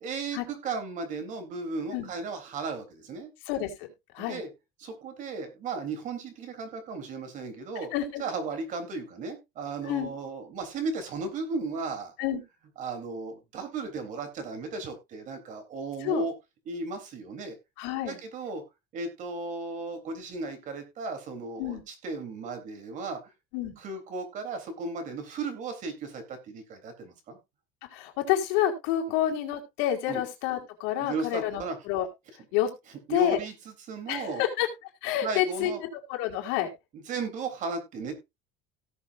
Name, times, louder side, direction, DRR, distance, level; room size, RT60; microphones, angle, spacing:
voice 1, 0.0-3.3 4.2-4.5 4.8-7.9 8.2-12.1 12.8-16.3 16.7-17.6 18.1-18.6 18.9-23.2 23.8-27.4 30.1-30.2 31.0-31.8 33.1-34.4 35.2-35.8 36.9-38.3, right 3 dB, 40° right, 6 dB, 3.7 m, -35 dB
voice 2, 3.5-3.9 4.1-4.4 7.9-8.2 9.8-10.1 12.2-12.4 16.0-16.2 17.8-18.2 21.6-21.8 23.5-23.7 27.9-32.1 32.5-32.7 33.1-33.4 34.1-34.7 35.0-35.7 36.1-36.7, left 11 dB, 85° left, 1 dB, 4.5 m, -28 dB
18.0 x 6.9 x 2.6 m, 0.23 s
cardioid pair, 175°, 20 cm